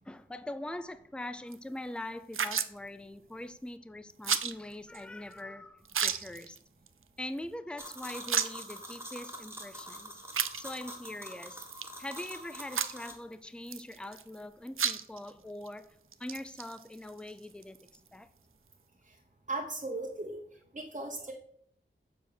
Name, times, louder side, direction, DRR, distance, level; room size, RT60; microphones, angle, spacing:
voice 1, 0.1-6.6 7.2-10.2 10.5-11.6 12.0-18.3, left 1 dB, 5° left, 0.5 m, -42 dB
sound 1, 1.5-1.6 2.3-2.8 4.2-4.5 4.9-5.0 5.3-5.4 5.9-6.6 6.9-7.0 7.4-7.5 7.9-8.7 9.4-9.5 10.3-11.0 11.6-12.3 12.6-13.1 13.7-14.4 14.7-15.3 15.7-15.8 16.1-18.1, right 7 dB, 90° right, 0.5 m, -33 dB
sound 2, 7.8-13.1, equal, 10° right, 1.6 m, -45 dB
voice 2, 19.5-20.4 20.7-21.3, right 2 dB, 35° right, 1.1 m, -37 dB
7.0 x 4.5 x 6.6 m
wide cardioid pair, 55°, 20 cm